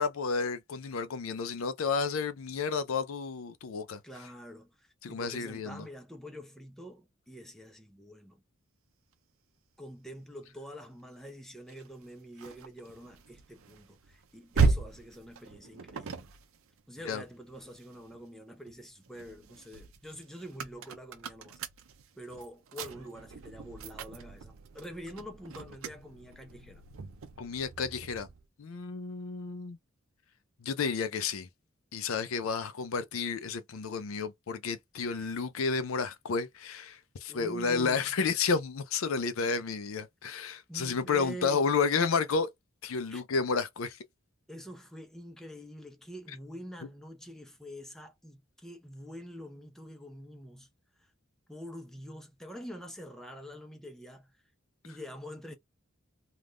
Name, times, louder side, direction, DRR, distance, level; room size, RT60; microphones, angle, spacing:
voice 1, 0.0-4.0 5.0-5.8 17.1-17.2 27.4-28.3 28.6-29.8 30.6-31.5 31.9-42.5 42.8-44.0, left 5 dB, 75° left, 0.5 m, -31 dB
voice 2, 4.0-8.4 9.8-16.3 16.9-21.6 22.2-26.8 37.3-38.1 40.7-41.7 43.1-43.2 44.5-50.7 51.0-51.1 51.5-54.3 54.8-55.5, equal, ahead, 0.6 m, -46 dB
sound 1, 11.7-18.2 18.7-28.5, right 4 dB, 75° right, 0.5 m, -36 dB
3.4 x 2.4 x 2.5 m
head